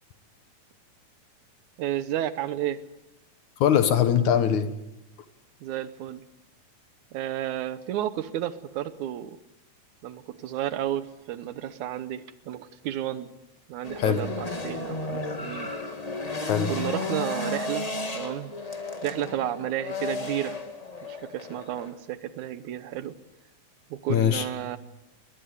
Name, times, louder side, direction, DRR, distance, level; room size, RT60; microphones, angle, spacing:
voice 1, 1.8-2.8 5.6-6.2 7.1-9.4 10.0-13.3 13.7-15.7 16.7-18.5 19.0-20.6 21.0-23.2 23.9-24.8, right 12 dB, 75° right, 14 dB, 2.3 m, -32 dB
voice 2, 3.6-4.7 14.0-14.2 16.4-16.7 24.1-24.5, left 9 dB, 70° left, 10 dB, 2.8 m, -22 dB
sound 1, 13.8-21.9, left 2 dB, 20° left, 1.2 m, -33 dB
21.5 x 20.0 x 8.3 m, 0.92 s
omnidirectional pair, 3.6 m